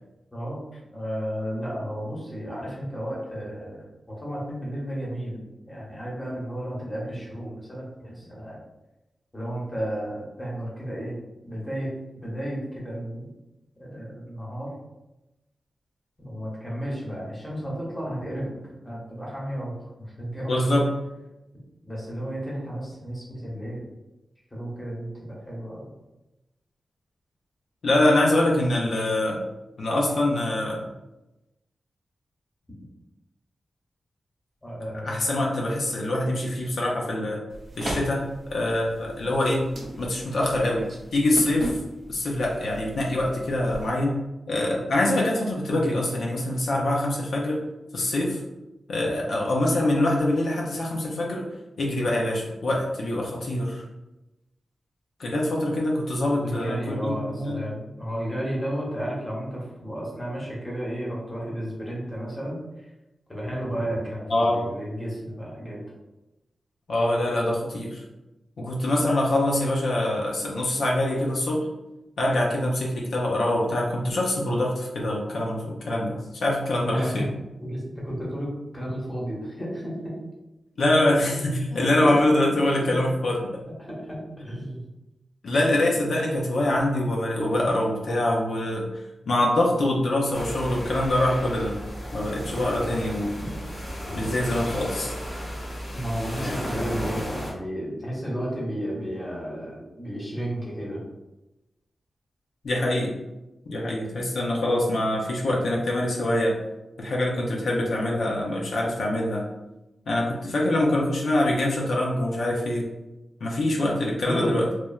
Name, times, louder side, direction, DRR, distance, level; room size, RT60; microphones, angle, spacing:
voice 1, 0.3-0.6 0.9-5.4 5.7-8.6 9.3-11.2 11.4-11.9 12.2-13.2 13.8-14.7 16.2-19.8 20.2-20.8 21.8-23.8 24.5-25.9 34.6-35.2 56.4-62.6 63.3-65.8 76.9-77.3 77.6-80.2 81.7-82.1 82.6-83.0 83.7-84.9 95.9-101.0 114.2-114.6, equal, 15° left, -5 dB, 0.7 m, -33 dB
voice 2, 20.5-20.9 27.8-29.4 29.8-30.9 35.0-37.4 37.8-38.2 38.5-39.6 40.0-41.8 42.1-44.1 44.5-47.6 47.9-48.4 48.9-51.4 51.8-53.8 55.2-57.6 64.3-64.7 66.9-68.0 68.6-71.7 72.2-77.3 80.8-83.6 85.4-91.8 92.1-93.3 94.1-95.1 96.4-96.6 102.6-103.1 103.7-106.5 107.0-109.4 110.1-112.9 113.4-114.7, left 1 dB, 75° left, -2 dB, 0.4 m, -24 dB
sound 1, 37.5-44.0, right 1 dB, 55° right, 0.5 m, -38 dB
sound 2, 90.3-97.5, equal, 45° left, 0.8 m, -34 dB
3.0 x 2.1 x 2.2 m, 1.0 s
wide cardioid pair, 140°, 0 cm